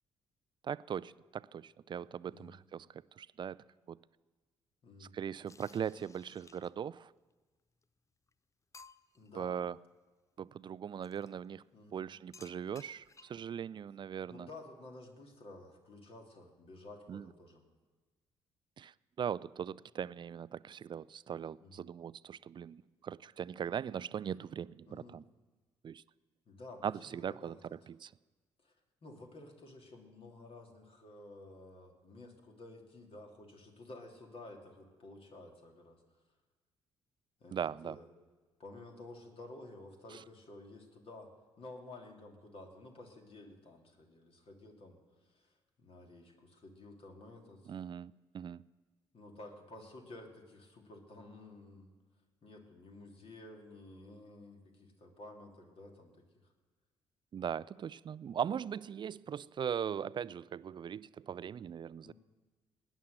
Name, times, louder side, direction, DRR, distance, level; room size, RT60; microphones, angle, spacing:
voice 1, 0.6-3.6 3.9-4.0 5.0-7.1 9.4-9.8 10.4-11.6 11.9-14.5 17.1-17.2 18.8-25.2 25.8-26.0 26.8-28.1 37.5-38.0 47.7-48.6 57.3-62.1, right 8 dB, 35° right, 20 dB, 0.4 m, -40 dB
voice 2, 2.3-2.6 4.8-5.1 9.1-9.6 11.7-12.1 14.3-17.6 21.6-21.9 24.9-25.2 26.5-27.5 28.6-28.7 29.0-36.0 37.4-38.1 38.6-41.3 41.6-47.8 49.1-51.9 52.4-56.5 62.0-62.1, left 2 dB, 45° left, 2 dB, 2.8 m, -52 dB
sound 1, 5.5-6.9 7.8-7.9 8.3-8.4 8.7-9.3 11.0-11.3 12.3-13.5, left 4 dB, 25° left, 0.5 m, -58 dB
18.0 x 10.0 x 6.6 m, 1.3 s
figure-of-eight pair, 45°, 13 cm